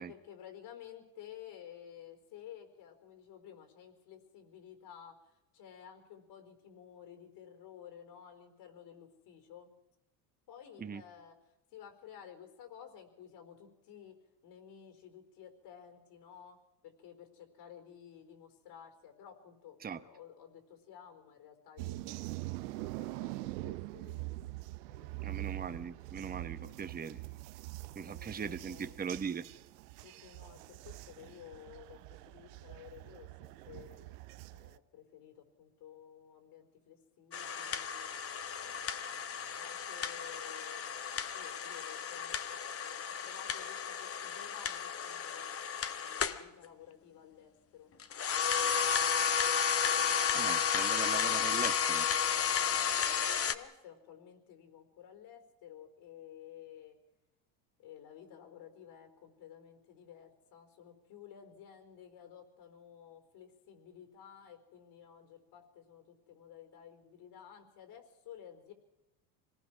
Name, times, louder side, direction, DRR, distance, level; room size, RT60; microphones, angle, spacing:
voice 1, 0.0-5.2 5.5-9.7 10.5-11.4 11.7-16.6 16.8-22.4 22.8-24.4 24.9-25.7 26.1-26.8 28.0-29.2 30.0-32.0 32.3-34.1 34.5-38.1 38.6-42.4 42.7-45.6 46.0-47.9 48.3-49.0 52.3-57.0 57.8-68.7, left 9 dB, 60° left, 7 dB, 4.4 m, -54 dB
sound 1, 21.8-34.8, right 20 dB, 75° right, 1.0 m, -44 dB
voice 2, 25.2-27.2 28.0-29.5 50.3-52.1, right 6 dB, 20° right, 10 dB, 1.1 m, -40 dB
sound 2, 37.3-46.4 48.0-53.6, left 7 dB, 30° left, 1.3 m, -33 dB
25.0 x 18.5 x 6.3 m, 0.97 s
hypercardioid pair, 90°, 47 cm